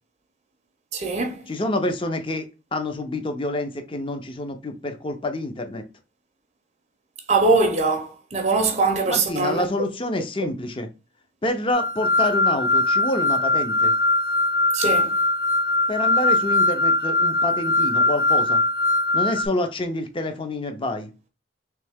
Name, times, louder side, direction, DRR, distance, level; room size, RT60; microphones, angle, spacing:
voice 1, 0.9-1.4 7.3-9.7 14.7-15.1, right 3 dB, 35° right, 0.6 m, -22 dB
voice 2, 1.5-5.8 9.1-10.9 11.4-13.9 15.9-18.6 19.1-21.1, left 2 dB, 25° left, 0.6 m, -27 dB
sound 1, 11.7-19.5, left 2 dB, 70° left, 0.7 m, -21 dB
3.4 x 3.2 x 3.5 m
head